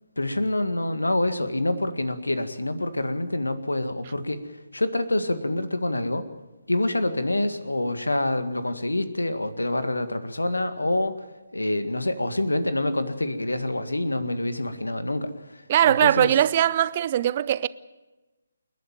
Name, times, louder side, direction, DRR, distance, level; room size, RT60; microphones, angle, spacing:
voice 1, 0.2-6.3 6.7-11.3 11.5-16.3, left 1 dB, 75° left, 1.9 m, -26 dB
voice 2, 15.7-17.7, right 11 dB, 30° right, 0.6 m, -20 dB
28.5 x 11.0 x 9.0 m
figure-of-eight pair, 140°, 0 cm